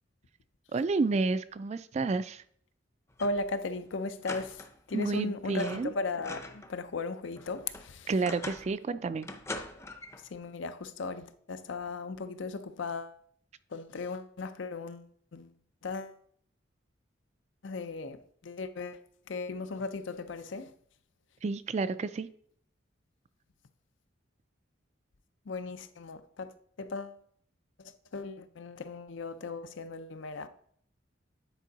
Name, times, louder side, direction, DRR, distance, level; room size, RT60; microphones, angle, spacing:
voice 1, 0.7-2.4 4.9-5.9 8.1-9.3 21.4-22.3, right 3 dB, 35° right, 0.3 m, -30 dB
sound 1, 3.1-3.5 3.8-3.9 4.2-5.1 5.5-6.8 7.1-8.8 9.2-10.3, left 2 dB, 15° left, 0.6 m, -43 dB
voice 2, 3.2-4.6 4.9-8.1 10.3-13.2 13.7-15.5 15.8-16.2 17.6-19.0 19.3-20.7 25.5-26.5 26.8-27.2 27.8-30.5, left 3 dB, 75° left, 0.6 m, -37 dB
9.1 x 4.5 x 4.0 m
head